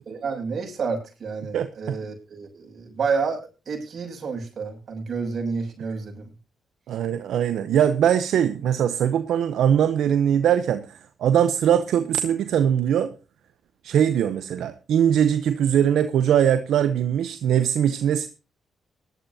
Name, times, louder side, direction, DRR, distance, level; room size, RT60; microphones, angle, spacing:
voice 1, 0.1-3.4 3.7-6.2, right 5 dB, 55° right, 1 dB, 6.8 m, -29 dB
voice 2, 1.5-2.0 6.9-13.1 13.8-18.3, right 9 dB, 80° right, 11 dB, 0.7 m, -21 dB
19.0 x 12.0 x 2.8 m, 0.30 s
supercardioid pair, 60°, 0 cm